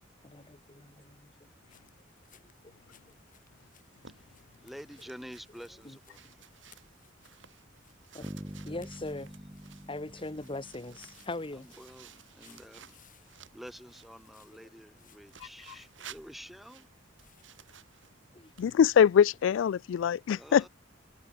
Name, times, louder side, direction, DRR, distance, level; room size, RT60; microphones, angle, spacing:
voice 1, 0.2-1.5 2.4-2.5 5.8-6.0 8.1-8.3 8.6-9.3 9.9-11.7 14.6-14.7 18.3-18.7, left 2 dB, 30° left, 1.6 m, -41 dB
sound 1, 1.4-16.8 17.1-17.4, left 10 dB, 45° left, 5.4 m, -65 dB
sound 2, 3.6-14.3 15.3-19.7, right 8 dB, 75° right, 3.1 m, -56 dB
voice 2, 4.6-6.5 11.5-13.0 13.5-16.9 20.4-20.7, equal, ahead, 0.9 m, -49 dB
Bass guitar, 8.2-12.0, equal, 15° right, 2.8 m, -46 dB
voice 3, 18.6-20.7, left 8 dB, 75° left, 0.3 m, -23 dB
head